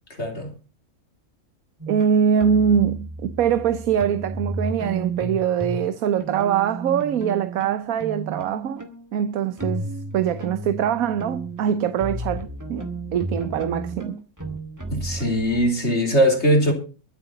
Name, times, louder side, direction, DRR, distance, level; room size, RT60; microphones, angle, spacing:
voice 1, 0.2-0.5 14.9-16.7, equal, 50° left, 3.7 m, -20 dB
sound 1, 1.8-5.9 6.2-15.7, right 2 dB, 10° right, 2.1 m, -33 dB
voice 2, 1.9-8.8 9.1-9.8 10.1-14.2, right 8 dB, 75° right, 1.3 m, -23 dB
22.5 x 7.8 x 4.1 m
omnidirectional pair, 1.5 m